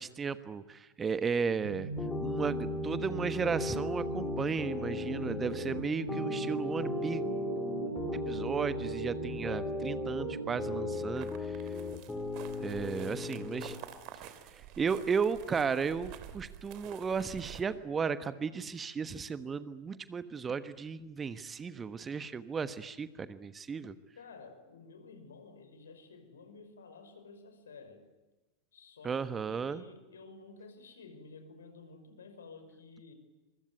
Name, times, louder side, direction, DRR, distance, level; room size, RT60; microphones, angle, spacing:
voice 1, 0.0-1.9 2.2-7.2 8.1-11.3 12.6-13.7 14.5-23.9 29.0-29.8, right 5 dB, 20° right, 14 dB, 1.2 m, -34 dB
sound 1, 1.6-11.1, right 2 dB, 75° right, 2.0 m, -40 dB
sound 2, 2.0-13.8, left 2 dB, 10° left, 3.3 m, -37 dB
sound 3, 11.2-17.6, right 10 dB, 40° right, 2.9 m, -49 dB
voice 2, 13.0-13.7 24.1-28.1 28.7-33.1, left 4 dB, 65° left, 8 dB, 5.5 m, -52 dB
25.5 x 24.5 x 9.4 m, 1.1 s
figure-of-eight pair, 90°, 0 cm